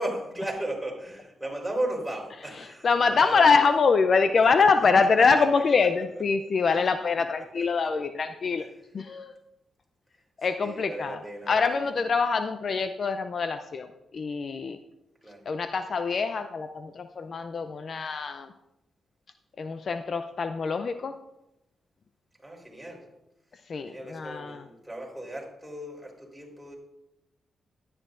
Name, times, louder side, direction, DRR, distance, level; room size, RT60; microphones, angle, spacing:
voice 1, 0.0-3.5 5.0-5.9 6.7-6.9 7.6-7.9 8.6-8.7 10.6-11.8 15.2-15.4 22.4-23.0 23.9-26.7, right 1 dB, 5° right, -2 dB, 4.0 m, -36 dB
voice 2, 2.8-8.7 8.9-9.4 10.4-11.2 11.5-13.9 14.1-14.8 15.5-18.5 19.6-21.1 23.7-24.6, left 5 dB, 55° left, 9 dB, 0.5 m, -24 dB
12.5 x 11.0 x 2.6 m, 0.88 s
cardioid pair, 70°, 0 cm